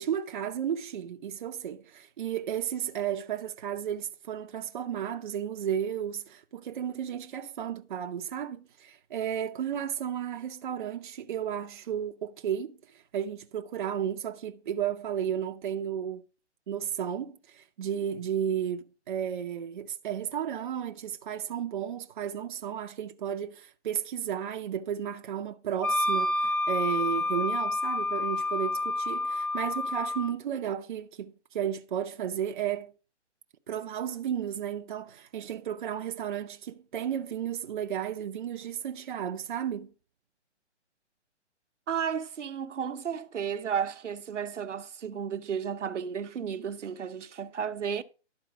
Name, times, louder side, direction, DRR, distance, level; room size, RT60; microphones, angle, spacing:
voice 1, 0.0-16.2 16.7-32.9 33.7-39.9, right 9 dB, 45° right, 0.7 m, -33 dB
Wind instrument woodwind instrument, 25.8-30.3, left 2 dB, 15° left, 0.6 m, -29 dB
voice 2, 41.9-48.0, right 7 dB, 80° right, 0.9 m, -33 dB
11.5 x 4.4 x 5.8 m
hypercardioid pair, 150°, 36 cm